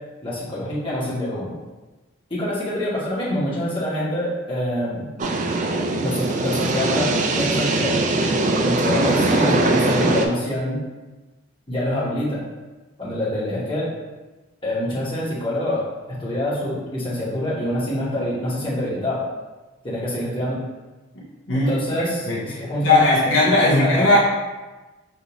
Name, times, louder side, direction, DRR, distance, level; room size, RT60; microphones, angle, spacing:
voice 1, 0.2-1.5 2.3-5.1 6.0-8.0 8.6-10.8 11.7-12.4 13.0-13.9 14.6-19.2 19.8-20.6 21.5-23.2 23.5-24.1, left 1 dB, 25° left, -8 dB, 1.1 m, -26 dB
sound 1, 5.2-10.3, right 2 dB, 35° right, 0.3 m, -21 dB
voice 2, 22.8-24.2, left 2 dB, 60° left, -5 dB, 0.8 m, -17 dB
5.3 x 2.6 x 2.9 m, 1.2 s
head